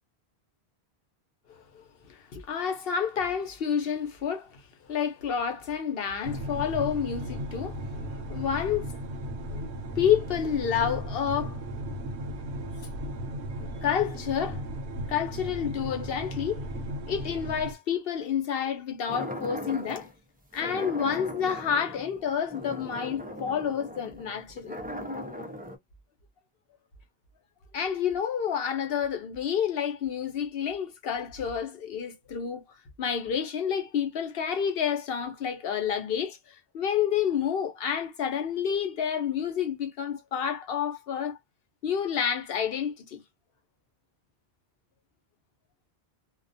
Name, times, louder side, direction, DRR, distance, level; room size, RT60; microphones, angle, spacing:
voice 1, 2.1-4.6 4.9-9.0 9.5-9.6 10.0-11.6 13.6-14.6 15.1-16.6 17.1-20.1 20.5-24.8 27.7-32.6 33.0-41.4 41.8-43.2, left 8 dB, 65° left, 0.9 m, -29 dB
sound 1, 6.2-17.7, right 1 dB, 85° right, 0.9 m, -36 dB
sound 2, 19.1-20.1 20.5-25.8, equal, 15° right, 0.3 m, -38 dB
2.4 x 2.2 x 2.5 m
omnidirectional pair, 1.1 m